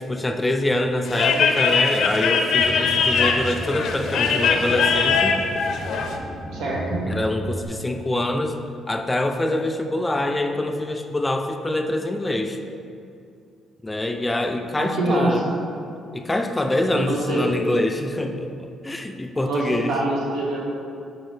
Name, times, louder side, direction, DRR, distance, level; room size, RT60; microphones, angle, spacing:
voice 1, 0.1-5.4 7.1-8.6 8.9-12.6 13.8-15.4 16.1-19.9, left 1 dB, 15° left, 5 dB, 0.4 m, -25 dB
sound 1, 1.1-6.2, left 5 dB, 75° left, 0.5 m, -21 dB
sound 2, 2.6-7.7, right 1 dB, 25° right, 0.9 m, -34 dB
voice 2, 6.5-7.0 14.8-15.4 16.9-17.5 19.4-20.7, right 1 dB, 85° right, -3 dB, 1.1 m, -25 dB
7.9 x 4.1 x 3.3 m, 2.5 s
cardioid pair, 90°, 0 cm